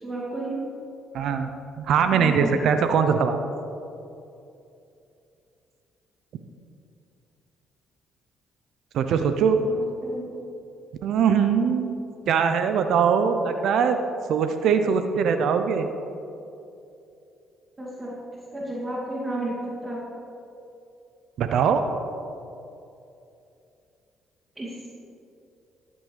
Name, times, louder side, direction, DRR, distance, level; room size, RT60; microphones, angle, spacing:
voice 1, 0.0-0.6 2.1-2.5 10.0-10.3 17.8-18.1 18.5-19.5 19.8-20.0 24.6-24.7, right 1 dB, 25° right, -4 dB, 2.5 m, -31 dB
voice 2, 1.1-1.5 1.8-3.4 8.9-9.6 11.0-12.0 12.3-14.0 14.3-15.9 21.4-21.8, right 6 dB, 65° right, 8 dB, 0.7 m, -21 dB
14.0 x 12.0 x 3.3 m, 2.7 s
hypercardioid pair, 50°, 0 cm